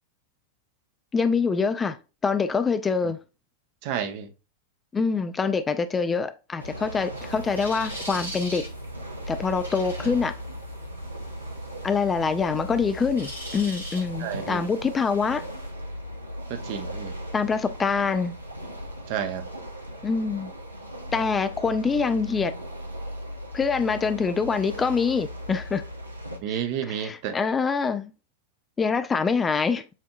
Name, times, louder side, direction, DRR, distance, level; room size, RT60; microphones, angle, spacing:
voice 1, 1.1-2.0 2.2-3.2 4.9-8.6 9.3-10.3 11.8-15.4 17.3-18.3 20.0-20.5 21.1-22.5 23.5-25.8 26.5-28.1 28.8-29.8, left 5 dB, 15° left, 0.3 m, -25 dB
voice 2, 3.8-4.3 14.2-14.6 16.5-17.1 19.1-19.4 26.4-27.4, right 9 dB, 45° right, 0.7 m, -30 dB
sound 1, 6.6-26.4, equal, 85° right, 0.8 m, -38 dB
sound 2, 7.1-15.7, equal, 85° left, 1.6 m, -41 dB
7.2 x 2.6 x 2.3 m
figure-of-eight pair, 90°, 0 cm